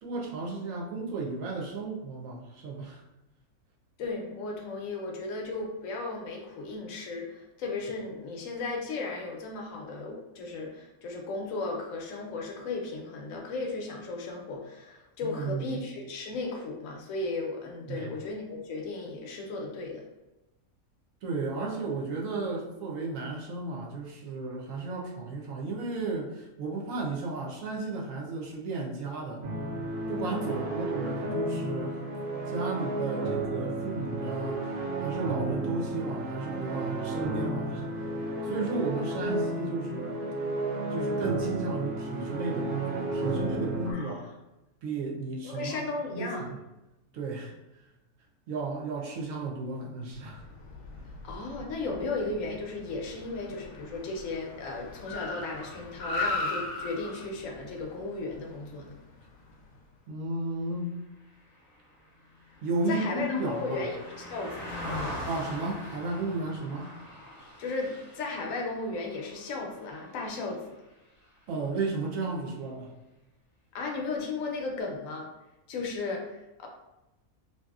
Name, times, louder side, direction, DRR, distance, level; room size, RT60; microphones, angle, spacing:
voice 1, 0.0-3.0 15.2-15.8 17.9-18.1 21.2-29.5 30.1-32.0 32.5-37.9 38.2-40.2 40.9-44.2 44.8-45.8 46.1-46.6 47.1-47.5 48.5-50.4 51.0-51.1 60.1-61.0 62.6-63.9 65.2-66.9 71.5-72.9, right 3 dB, 70° right, -1 dB, 1.0 m, -34 dB
voice 2, 4.0-20.0 30.5-30.7 43.8-44.3 45.4-46.5 51.2-58.9 62.9-64.7 67.6-70.7 73.7-75.3 75.7-76.7, left 3 dB, 70° left, 1 dB, 0.9 m, -35 dB
sound 1, 29.4-43.9, right 1 dB, 90° right, 0.5 m, -32 dB
Car, 50.2-59.8, left 2 dB, 85° left, 1.1 m, -38 dB
Car passing by, 61.3-70.8 71.2-71.4, left 1 dB, 40° left, 0.8 m, -42 dB
2.8 x 2.6 x 2.3 m, 0.97 s
omnidirectional pair, 1.6 m